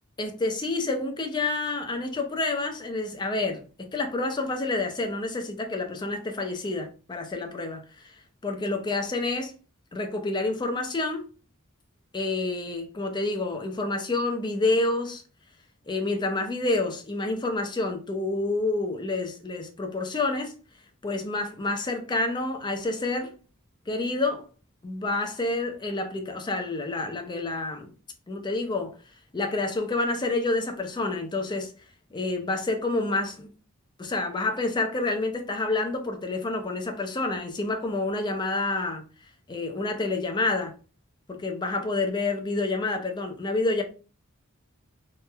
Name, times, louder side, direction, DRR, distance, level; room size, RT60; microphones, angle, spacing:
voice 1, 0.2-8.1 8.4-9.5 9.9-11.2 12.1-15.2 15.9-20.5 21.0-23.3 23.9-24.4 24.8-27.9 28.3-29.0 29.3-31.7 32.1-33.5 34.0-39.0 39.5-40.7 41.3-43.8, left 2 dB, 20° left, 0.4 m, -28 dB
3.0 x 2.0 x 2.2 m
head